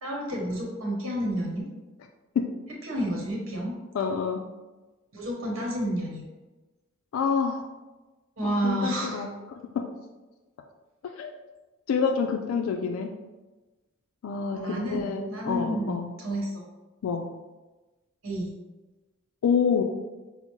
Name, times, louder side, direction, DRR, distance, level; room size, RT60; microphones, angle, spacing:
voice 1, 0.0-1.7 2.8-3.7 5.1-6.2 8.4-9.3 14.5-16.6 18.2-18.5, right 1 dB, 70° right, -2 dB, 1.1 m, -30 dB
voice 2, 3.9-4.4 7.1-7.7 8.4-9.9 11.2-11.4 11.9-13.1 14.2-16.1 17.0-17.3 19.4-19.8, left 6 dB, 90° left, 4 dB, 0.3 m, -27 dB
5.6 x 2.0 x 3.0 m, 1.2 s
head